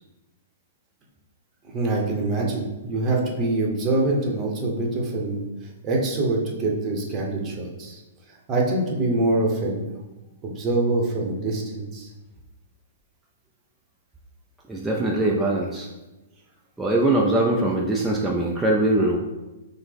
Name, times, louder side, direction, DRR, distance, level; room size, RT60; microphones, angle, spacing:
voice 1, 1.7-5.4 5.8-8.0 8.5-9.8 10.4-12.1, right 2 dB, 25° right, -1 dB, 0.9 m, -24 dB
voice 2, 14.7-15.9 16.8-19.2, right 2 dB, 5° right, -3 dB, 0.4 m, -22 dB
5.6 x 2.1 x 3.4 m, 1.1 s
hypercardioid pair, 145°, 0 cm